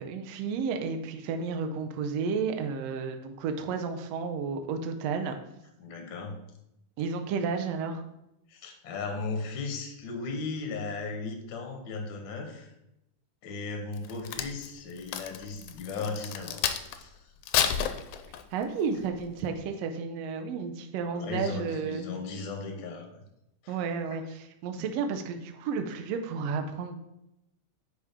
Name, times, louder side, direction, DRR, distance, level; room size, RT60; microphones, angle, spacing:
voice 1, 0.0-5.4 7.0-8.0 18.5-22.0 23.7-27.0, right 5 dB, 75° right, 5 dB, 1.5 m, -32 dB
voice 2, 5.8-6.3 8.5-12.7 13.4-17.2 18.9-19.1 21.1-23.2 23.6-23.8 24.1-24.2 24.8-24.9, left 4 dB, 55° left, 3 dB, 1.4 m, -36 dB
Crack, 13.9-17.0 17.4-18.6 19.2-19.4, left 9 dB, 80° left, 1.9 m, -30 dB
9.7 x 4.3 x 3.6 m, 0.86 s
omnidirectional pair, 3.6 m